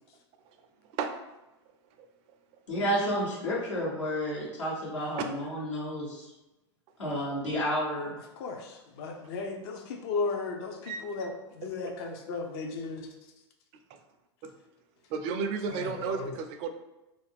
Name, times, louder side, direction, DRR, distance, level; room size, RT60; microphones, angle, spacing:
voice 1, 2.7-6.3 7.0-8.1, equal, 90° left, -6 dB, 1.2 m, -31 dB
voice 2, 8.4-13.1 15.7-16.4, left 4 dB, 55° left, 3 dB, 0.5 m, -35 dB
voice 3, 15.1-16.7, right 5 dB, 45° right, 6 dB, 0.4 m, -32 dB
2.5 x 2.3 x 3.3 m, 0.99 s
hypercardioid pair, 100°, 15 cm